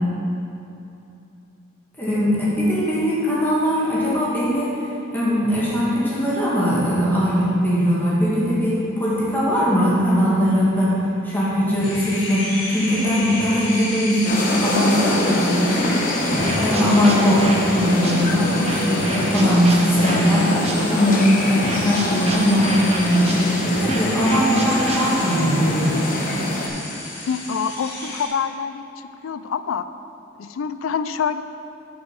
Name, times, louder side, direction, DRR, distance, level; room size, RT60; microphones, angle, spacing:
voice 1, 2.0-4.7 5.1-10.9 11.2-20.5 20.9-25.9, equal, 10° left, -9 dB, 2.0 m, -20 dB
sound 1, 11.8-28.3, left 2 dB, 70° left, 2.1 m, -32 dB
sound 2, 14.2-26.7, left 1 dB, 45° left, 1.1 m, -25 dB
sound 3, 16.4-21.2 21.6-25.6, right 1 dB, 30° right, 0.8 m, -31 dB
voice 2, 27.3-28.9 29.2-29.9 30.4-31.4, left 6 dB, 90° left, 12 dB, 0.4 m, -26 dB
11.0 x 5.3 x 4.8 m, 2.8 s
head